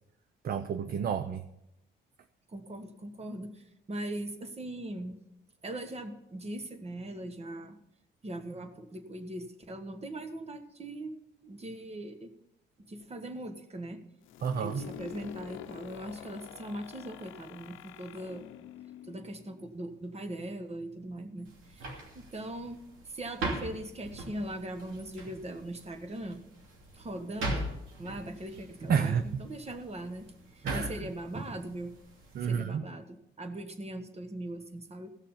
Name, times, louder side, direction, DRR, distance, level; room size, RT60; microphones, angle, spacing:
voice 1, 0.4-1.4 14.4-14.9 28.9-29.4 30.6-30.9 32.3-32.8, right 7 dB, 50° right, 11 dB, 0.6 m, -30 dB
voice 2, 2.5-5.2 5.6-7.8 8.2-11.1 11.4-12.3 12.9-14.0 14.5-18.4 19.0-22.8 23.0-26.4 26.9-27.7 28.0-31.9 32.4-35.1, right 1 dB, 30° right, 7 dB, 1.4 m, -40 dB
sound 1, 14.3-19.9, left 11 dB, 80° left, 0.7 m, -47 dB
sound 2, 21.4-32.6, right 1 dB, 85° right, 2.8 m, -41 dB
16.0 x 6.6 x 5.7 m, 0.86 s
cardioid pair, 90°, 20 cm